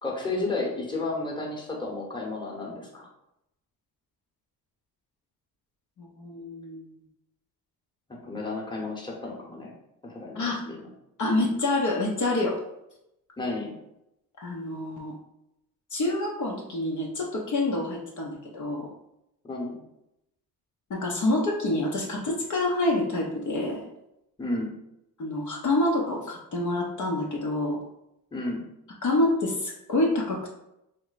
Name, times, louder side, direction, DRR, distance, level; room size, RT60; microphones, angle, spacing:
voice 1, 0.0-3.1 8.1-9.7 10.0-10.9 13.4-13.7 19.4-19.8 24.4-24.7 28.3-28.6, left 2 dB, 10° left, -2 dB, 1.0 m, -32 dB
voice 2, 6.0-6.9 10.3-10.6 11.2-12.6 14.4-15.1 15.9-18.9 20.9-23.8 25.2-27.8 29.0-30.5, left 2 dB, 50° left, -2 dB, 0.7 m, -27 dB
3.2 x 2.2 x 3.9 m, 0.84 s
cardioid pair, 70°, 38 cm